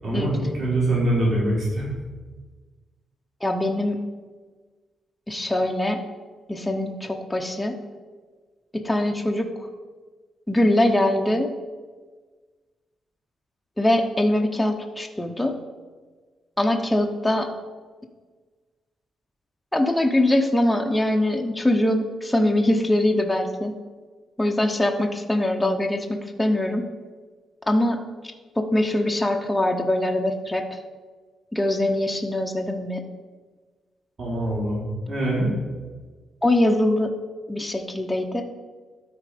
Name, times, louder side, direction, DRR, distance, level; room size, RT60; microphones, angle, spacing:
voice 1, 0.0-1.9 34.2-35.5, right 1 dB, 45° right, -6 dB, 2.8 m, -24 dB
voice 2, 3.4-4.0 5.3-6.0 6.5-7.8 8.7-9.7 10.5-11.5 13.8-15.6 16.6-17.5 19.7-23.7 24.4-26.8 27.7-28.0 28.6-30.8 31.5-33.0 36.4-37.1 37.5-38.4, left 1 dB, 5° left, 2 dB, 0.6 m, -22 dB
12.5 x 4.2 x 5.0 m, 1.4 s
wide cardioid pair, 150°, 0 cm